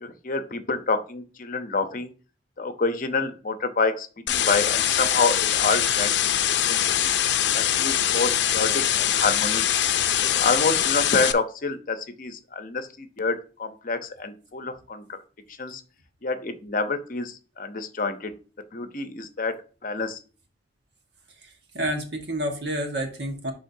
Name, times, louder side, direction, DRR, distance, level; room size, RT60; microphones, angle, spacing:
voice 1, 0.0-2.1 2.6-6.2 6.5-7.1 7.5-9.7 10.2-15.2 15.6-15.8 16.2-18.3 18.7-20.2, left 3 dB, 50° left, 9 dB, 0.8 m, -28 dB
sound 1, 4.3-11.3, left 11 dB, 85° left, 0.5 m, -23 dB
voice 2, 21.4-23.5, right 1 dB, 75° right, 4 dB, 1.5 m, -29 dB
10.5 x 3.6 x 2.7 m, 0.36 s
head